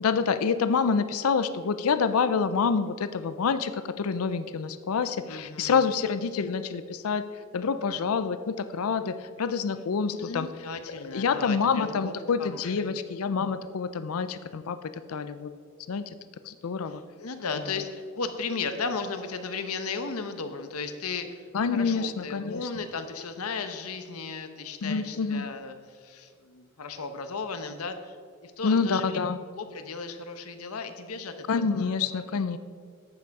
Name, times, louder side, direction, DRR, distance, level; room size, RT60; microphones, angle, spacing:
voice 1, 0.0-3.7 4.0-7.2 7.5-10.5 11.0-14.8 15.1-15.5 15.9-16.0 16.5-17.0 21.5-22.7 24.8-25.5 28.6-29.4 31.5-32.6, left 5 dB, 70° left, 12 dB, 0.5 m, -27 dB
voice 2, 5.3-5.8 10.2-12.1 12.4-12.9 16.9-21.4 21.7-28.2 28.4-29.2 29.6-32.0, left 4 dB, 90° left, 8 dB, 0.9 m, -35 dB
11.5 x 8.4 x 4.7 m, 2.1 s
head